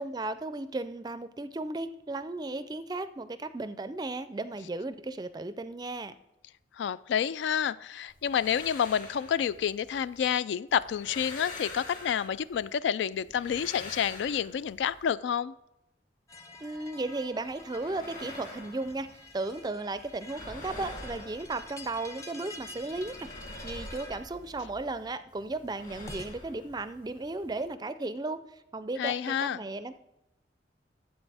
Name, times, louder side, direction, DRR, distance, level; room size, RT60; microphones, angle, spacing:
voice 1, 0.0-6.1 16.6-23.3 23.6-28.4 28.7-30.0, right 2 dB, 20° right, 13 dB, 0.4 m, -35 dB
voice 2, 6.8-15.5 29.0-29.6, left 8 dB, 75° left, 18 dB, 0.3 m, -29 dB
sound 1, 8.1-10.3 10.7-12.7 13.1-15.0 17.4-19.6 19.9-22.1 22.5-25.0 25.3-27.7, left 2 dB, 45° left, 2.8 m, -46 dB
sound 2, 16.3-26.3, left 2 dB, 15° left, 0.8 m, -48 dB
12.5 x 7.9 x 3.4 m, 0.90 s
head